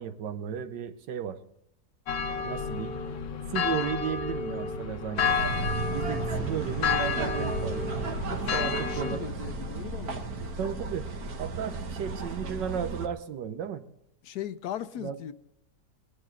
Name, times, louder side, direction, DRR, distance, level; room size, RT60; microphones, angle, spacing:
voice 1, 0.0-1.4 2.4-3.0 3.5-5.3 5.8-7.9 8.5-9.2 10.6-11.1 11.4-13.8 15.0-15.2, right 8 dB, 85° right, 10 dB, 1.6 m, -34 dB
sound 1, 2.1-9.2, left 6 dB, 90° left, 1.7 m, -31 dB
sound 2, 5.2-13.1, right 4 dB, 60° right, 1.6 m, -34 dB
voice 2, 8.3-10.2 14.2-15.3, left 10 dB, 70° left, 13 dB, 1.1 m, -38 dB
20.0 x 10.5 x 3.9 m, 0.85 s
omnidirectional pair, 1.9 m